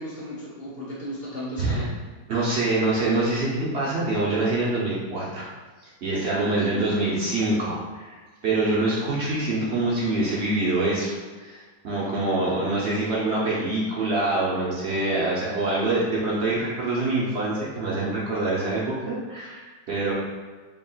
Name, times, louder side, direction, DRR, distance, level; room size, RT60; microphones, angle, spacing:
voice 1, 0.0-2.0 6.6-6.9 12.3-12.8, equal, 20° right, -8 dB, 0.4 m, -36 dB
voice 2, 2.3-5.5 6.0-20.1, right 2 dB, 55° right, -6 dB, 0.7 m, -25 dB
4.1 x 3.6 x 2.3 m, 1.4 s
omnidirectional pair, 1.9 m